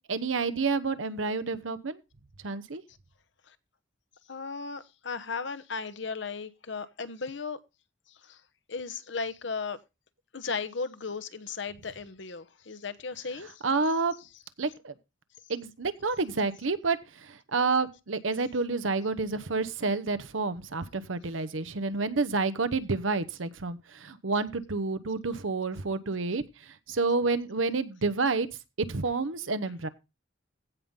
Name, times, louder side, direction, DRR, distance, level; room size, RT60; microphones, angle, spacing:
voice 1, 0.0-2.0 2.4-2.8 13.6-14.1 14.6-14.9 15.5-28.5 28.9-29.9, right 3 dB, 90° right, 1.0 m, -29 dB
voice 2, 4.3-7.6 8.1-8.4 8.7-9.8 10.3-13.6, left 4 dB, 65° left, 1.0 m, -36 dB
16.0 x 5.5 x 3.7 m
head